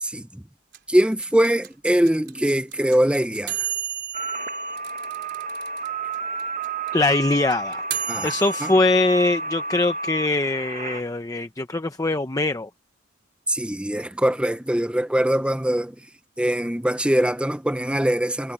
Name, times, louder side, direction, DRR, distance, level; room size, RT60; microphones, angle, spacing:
voice 1, 0.0-0.4 0.9-3.5 8.1-8.3 8.6-8.7 13.5-16.0 16.4-18.5, right 1 dB, 5° right, 0.9 m, -22 dB
sound 1, 0.7-5.9 6.1-6.2 6.4-8.7, right 10 dB, 55° right, 4.3 m, -32 dB
sound 2, 4.1-11.0, right 3 dB, 40° right, 1.2 m, -31 dB
voice 2, 6.9-7.8 8.2-12.7, left 2 dB, 15° left, 0.8 m, -22 dB
head